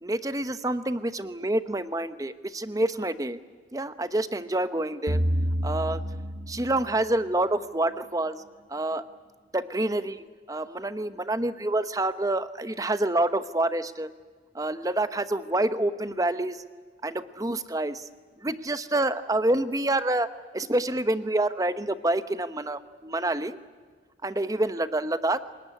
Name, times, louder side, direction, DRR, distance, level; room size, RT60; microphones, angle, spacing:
voice 1, 0.0-3.4 3.7-5.2 5.6-6.0 6.5-8.4 8.7-9.1 9.5-14.1 14.5-16.6 17.0-18.1 18.4-20.3 20.5-23.6 24.2-25.4, right 1 dB, 20° right, 12 dB, 0.9 m, -27 dB
sound 1, 5.1-7.3, equal, 65° right, 1.5 m, -28 dB
27.0 x 19.0 x 9.8 m, 1.5 s
head